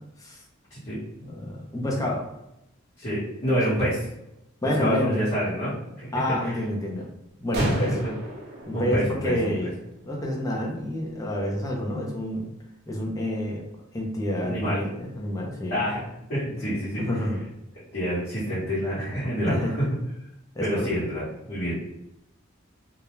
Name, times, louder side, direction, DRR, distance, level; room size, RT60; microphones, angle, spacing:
voice 1, 1.2-2.3 4.6-5.2 6.1-7.1 7.4-8.0 8.7-9.7 10.0-12.5 12.9-13.6 13.9-15.8 17.0-17.4 19.5-19.7 20.6-20.9, left 1 dB, 15° left, -1 dB, 0.5 m, -28 dB
voice 2, 3.0-4.0 4.8-6.6 7.6-8.1 8.7-9.5 14.5-14.8 15.7-17.0 17.9-19.8 20.6-21.8, equal, 50° left, -12 dB, 1.1 m, -27 dB
sound 1, 7.5-10.1, right 1 dB, 50° right, 0.5 m, -35 dB
2.3 x 2.1 x 3.0 m, 0.86 s
head